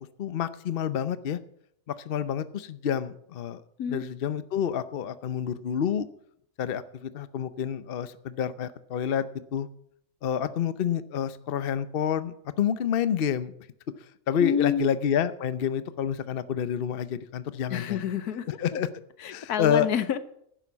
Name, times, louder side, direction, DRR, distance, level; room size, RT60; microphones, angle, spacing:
voice 1, 0.2-1.4 1.9-3.6 3.9-6.0 6.6-9.3 9.5-9.7 10.2-13.5 14.3-18.0 18.6-18.9 19.3-19.9, left 8 dB, 50° left, 13 dB, 0.8 m, -28 dB
voice 2, 14.4-14.9 17.7-18.5 19.2-20.2, left 8 dB, 85° left, 12 dB, 1.5 m, -28 dB
11.5 x 10.0 x 7.1 m, 0.70 s
omnidirectional pair, 1.6 m